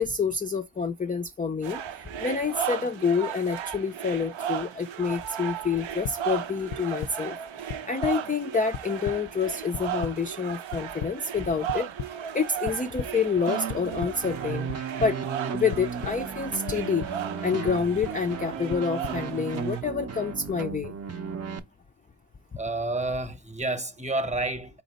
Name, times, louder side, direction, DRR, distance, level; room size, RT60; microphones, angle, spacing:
voice 1, 0.0-7.4 7.9-11.9 12.3-14.7 15.0-15.2 15.5-17.1 17.4-20.9, left 5 dB, 20° left, 0.3 m, -28 dB
sound 1, 1.6-19.8, right 9 dB, 75° right, 0.6 m, -36 dB
sound 2, 6.0-6.1 6.7-7.1 7.7-8.1 8.5-9.2 9.7-10.1 10.7-11.1 11.7-12.1 12.6-13.1 13.7-14.1 14.7-15.1 15.7-16.1 16.7-17.1 17.7-18.1 18.7-19.1, left 8 dB, 70° left, 0.6 m, -34 dB
sound 3, 13.5-21.6, right 6 dB, 35° right, 0.6 m, -35 dB
voice 2, 22.6-24.8, right 2 dB, 15° right, 0.9 m, -29 dB
4.1 x 2.9 x 3.9 m
cardioid pair, 45°, 47 cm